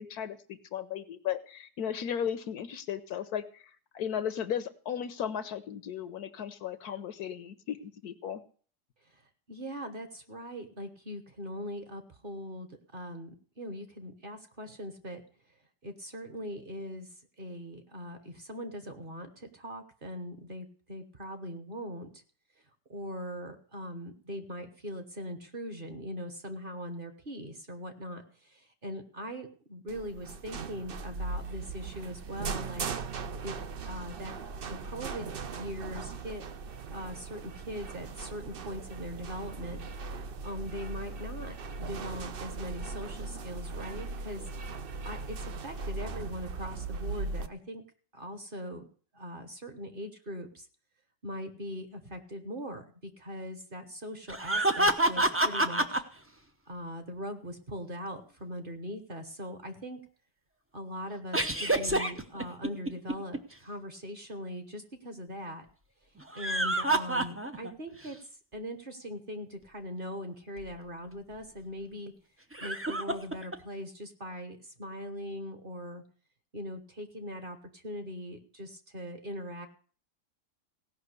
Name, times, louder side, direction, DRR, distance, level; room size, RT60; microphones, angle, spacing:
voice 1, 0.0-8.4, left 9 dB, 70° left, 13 dB, 1.2 m, -36 dB
voice 2, 9.0-15.2 15.8-22.2 22.9-32.9 33.4-33.5 33.8-36.4 36.8-44.5 45.0-47.8 48.1-48.8 49.1-50.7 51.2-56.0 56.7-60.0 60.7-65.7 66.3-72.1 72.6-76.0 76.5-79.7, equal, 35° right, 7 dB, 1.2 m, -41 dB
sound 1, 29.9-47.5, right 4 dB, 60° right, 0.6 m, -39 dB
sound 2, 54.3-56.0 61.3-63.4 66.2-67.7 68.1-68.2 70.6-70.7 72.5-73.6, right 1 dB, 15° right, 0.4 m, -27 dB
16.5 x 5.9 x 8.2 m, 0.43 s
omnidirectional pair, 1.8 m